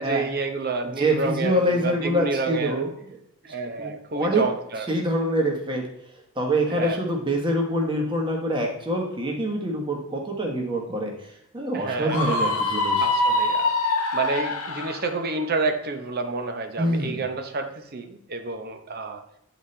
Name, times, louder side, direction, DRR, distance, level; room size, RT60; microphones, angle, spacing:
voice 1, 0.0-2.8 3.4-4.9 6.7-7.0 11.7-12.6 13.0-19.2, right 3 dB, 45° right, 6 dB, 0.8 m, -29 dB
voice 2, 1.0-2.9 3.8-4.4 4.9-5.8 6.4-11.1 11.5-13.1 16.8-17.2, right 1 dB, 25° right, 0 dB, 1.3 m, -25 dB
Screaming, 12.1-15.0, left 2 dB, 90° left, 1.0 m, -24 dB
9.9 x 4.2 x 3.3 m, 0.81 s
head